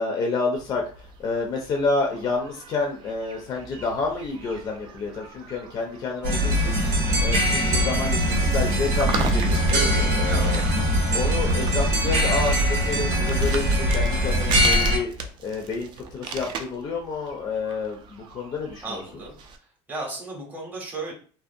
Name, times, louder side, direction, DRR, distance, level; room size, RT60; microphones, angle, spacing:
voice 1, 0.0-6.8 7.2-10.6 11.1-15.1 15.4-19.0, left 4 dB, 35° left, 2 dB, 0.4 m, -29 dB
sound 1, 0.6-19.6, right 5 dB, 45° right, 0.3 m, -39 dB
sound 2, 6.2-15.0, equal, 85° right, 0.8 m, -22 dB
voice 2, 7.0-7.4 10.3-10.5 18.8-19.3 19.9-21.1, right 2 dB, 15° right, -1 dB, 0.7 m, -34 dB
2.5 x 2.1 x 2.5 m, 0.42 s
cardioid pair, 155°, 12 cm